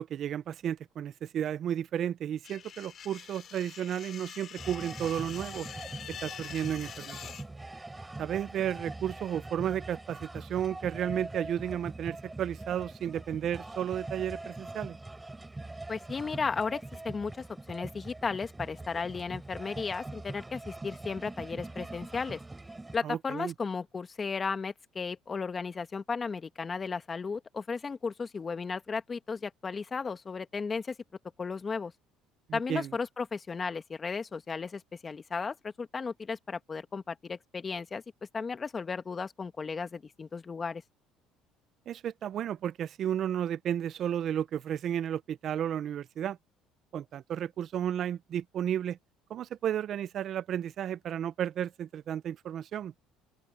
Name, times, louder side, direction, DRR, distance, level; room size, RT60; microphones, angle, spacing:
voice 1, 0.0-5.7 6.2-7.3 8.2-15.0 23.0-23.5 32.5-32.9 41.9-46.4 46.9-49.0 49.3-52.9, right 10 dB, 55° right, 0.6 m, -33 dB
sound 1, 2.4-7.4, left 9 dB, 50° left, 4.3 m, -45 dB
sound 2, 4.6-23.0, right 2 dB, 15° right, 7.3 m, -43 dB
voice 2, 15.9-22.4 22.9-30.9 31.4-31.9 32.5-38.0 38.3-40.8, left 5 dB, 30° left, 1.7 m, -35 dB
open air
supercardioid pair, 95°, 0 cm